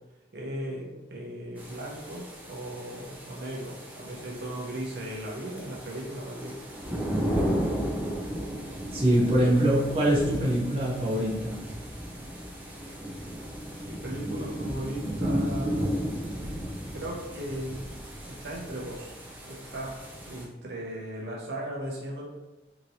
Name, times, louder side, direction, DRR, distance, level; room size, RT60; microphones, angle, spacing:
voice 1, 0.3-6.6 13.8-16.1 16.9-17.8 18.3-19.1 19.5-20.0 20.3-22.2, right 1 dB, 65° right, -3 dB, 0.8 m, -37 dB
sound 1, 1.6-20.4, equal, 10° right, 0.4 m, -34 dB
voice 2, 8.9-11.5, right 1 dB, 30° right, -5 dB, 0.8 m, -24 dB
2.9 x 2.8 x 2.7 m, 1.1 s
head